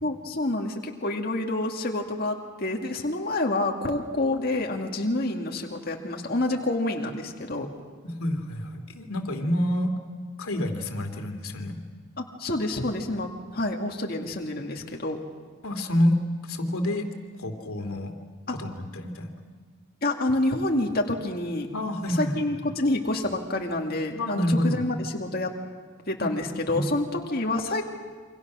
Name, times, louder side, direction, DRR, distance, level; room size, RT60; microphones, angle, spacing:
voice 1, 0.0-7.7 12.2-15.2 18.5-18.6 20.0-21.7 22.1-25.5 26.1-27.8, left 2 dB, 45° left, 1 dB, 2.1 m, -28 dB
voice 2, 8.2-9.9 10.4-11.8 15.6-17.1 17.4-18.1 18.5-19.3 21.7-22.3 24.2-24.8 26.7-26.9, left 1 dB, 85° left, 5 dB, 2.7 m, -27 dB
28.0 x 25.0 x 6.2 m, 1.5 s
head